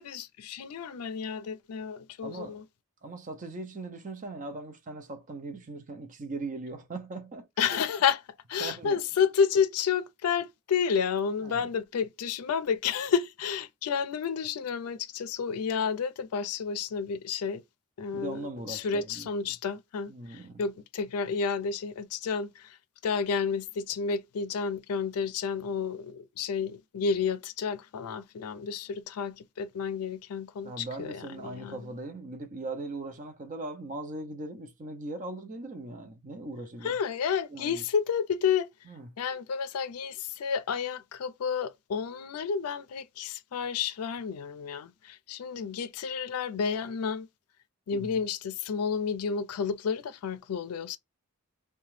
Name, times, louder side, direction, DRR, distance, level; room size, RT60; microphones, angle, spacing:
voice 1, 0.0-2.6 7.6-8.2 8.5-17.6 18.0-22.8 23.0-31.9 36.8-38.7 39.2-47.3 47.9-51.0, left 6 dB, 85° left, 0.4 m, -31 dB
voice 2, 2.2-2.6 3.0-7.8 8.6-9.0 11.4-11.7 18.1-19.3 20.1-20.6 30.6-37.0 37.5-37.8 38.9-39.1 47.9-48.2, right 2 dB, 35° right, 0.5 m, -39 dB
2.8 x 2.2 x 3.1 m
head